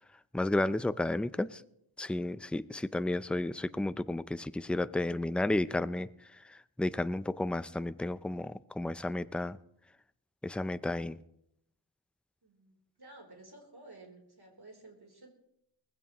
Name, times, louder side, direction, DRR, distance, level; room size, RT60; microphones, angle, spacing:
voice 1, 0.3-1.6 2.0-6.1 6.5-9.6 10.4-11.2, left 2 dB, ahead, 0.4 m, -32 dB
voice 2, 12.4-15.3, right 2 dB, 50° right, 3.6 m, -54 dB
20.5 x 16.0 x 3.0 m
wide cardioid pair, 60°, 49 cm